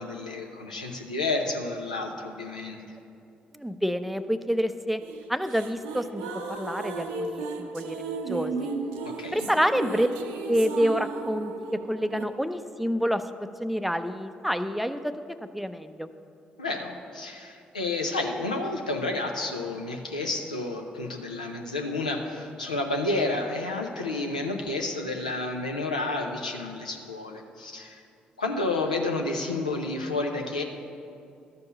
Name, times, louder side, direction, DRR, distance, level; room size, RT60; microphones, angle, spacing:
voice 1, 0.0-2.8 9.0-9.5 16.6-28.0 28.4-30.6, left 2 dB, 90° left, 2 dB, 0.6 m, -30 dB
voice 2, 3.5-5.0 5.3-8.7 9.3-10.1 10.5-16.1, equal, 5° right, 10 dB, 0.5 m, -28 dB
sound 1, 5.0-12.2, right 3 dB, 75° right, 0.6 m, -35 dB
12.5 x 5.3 x 6.7 m, 2.5 s
figure-of-eight pair, 40°, 4 cm